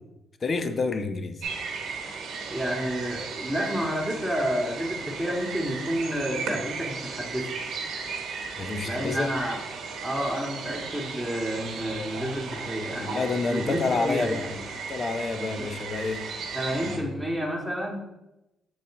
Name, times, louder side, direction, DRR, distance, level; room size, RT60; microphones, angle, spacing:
voice 1, 0.4-1.4 8.6-9.3 13.1-14.5 14.9-16.3 16.8-17.0, left 3 dB, 40° left, 0.6 m, -28 dB
sound 1, 1.4-17.0, right 5 dB, 80° right, 1.0 m, -36 dB
voice 2, 2.5-7.5 8.8-9.6 10.0-14.6 15.6-15.7 16.5-18.0, equal, ahead, 1.6 m, -30 dB
7.1 x 4.1 x 3.7 m
cardioid pair, 90°, 0 cm